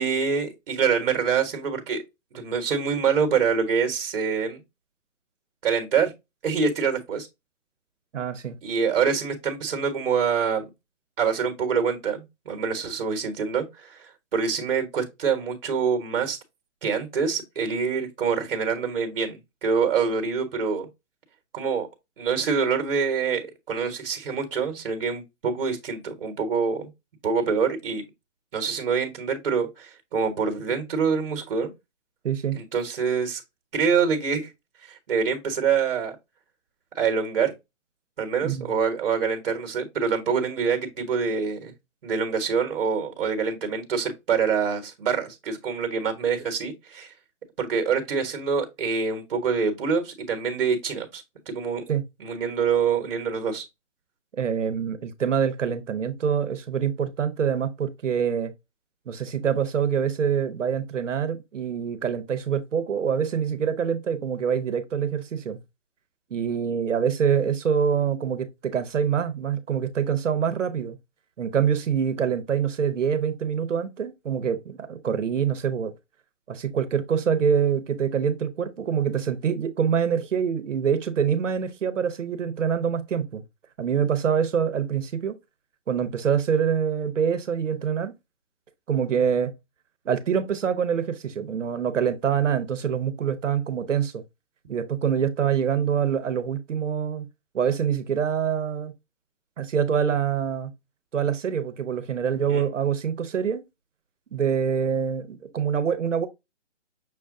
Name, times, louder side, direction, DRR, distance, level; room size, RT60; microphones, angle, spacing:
voice 1, 0.0-2.0 2.3-4.6 5.6-6.1 6.4-7.3 8.6-10.6 11.2-16.4 16.8-20.9 21.5-21.9 22.2-26.9 27.2-28.0 28.5-31.7 32.5-33.4 33.7-34.5 34.8-36.1 36.9-37.5 38.2-41.7 42.0-47.1 47.6-51.8 52.2-53.6 102.5-102.6, right 6 dB, 50° right, 1.3 m, -25 dB
voice 2, 8.1-8.6 32.2-32.6 38.4-38.7 51.9-52.0 54.3-58.5 59.1-65.6 66.3-71.0 71.4-75.9 76.5-83.4 83.8-85.4 85.9-88.1 88.9-89.5 90.0-94.2 94.7-97.3 97.5-98.9 99.6-100.7 101.1-103.6 104.3-106.3, right 7 dB, 75° right, 1.0 m, -25 dB
6.2 x 2.3 x 3.7 m
hypercardioid pair, 160°, 37 cm